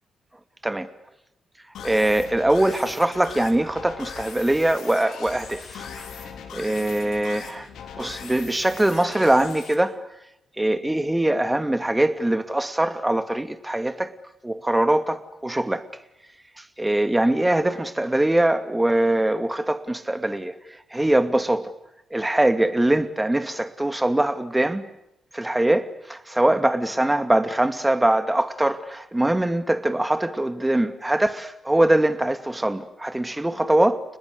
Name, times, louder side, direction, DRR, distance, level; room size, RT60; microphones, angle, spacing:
sound 1, 1.7-9.7, left 7 dB, 70° left, 4.5 m, -40 dB
voice 1, 1.8-7.7 8.0-10.0 10.6-14.1 14.4-15.9 16.6-21.7 22.1-24.8 25.3-34.0, right 1 dB, 15° right, 2.6 m, -22 dB
30.0 x 21.0 x 8.2 m
hypercardioid pair, 45°, 0 cm